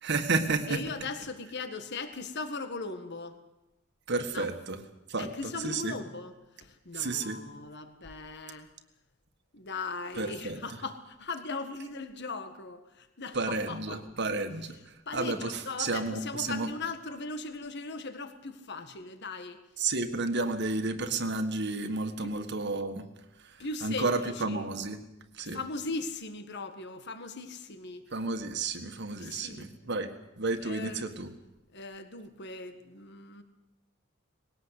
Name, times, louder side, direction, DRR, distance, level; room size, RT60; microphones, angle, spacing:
voice 1, 0.0-0.8 4.1-4.8 5.1-6.0 6.9-7.4 10.2-10.6 13.3-16.7 19.8-23.0 23.4-25.0 25.4-25.6 28.1-31.3, right 3 dB, 60° right, 7 dB, 1.7 m, -32 dB
voice 2, 0.7-3.4 4.3-4.5 5.2-8.7 9.5-14.0 15.0-19.6 22.2-22.3 23.6-24.6 25.4-28.0 29.2-30.0 30.6-31.1 31.7-33.4, left 3 dB, 60° left, 9 dB, 1.7 m, -39 dB
20.5 x 18.0 x 8.3 m, 0.97 s
head